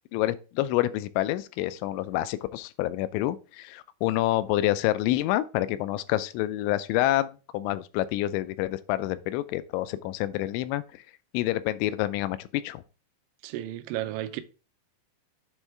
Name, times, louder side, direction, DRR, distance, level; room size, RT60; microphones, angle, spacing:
voice 1, 0.1-11.0 11.3-12.8, left 15 dB, 85° left, 2.9 m, -28 dB
voice 2, 13.4-14.4, right 14 dB, 85° right, 2.9 m, -33 dB
8.1 x 3.6 x 4.4 m
omnidirectional pair, 5.4 m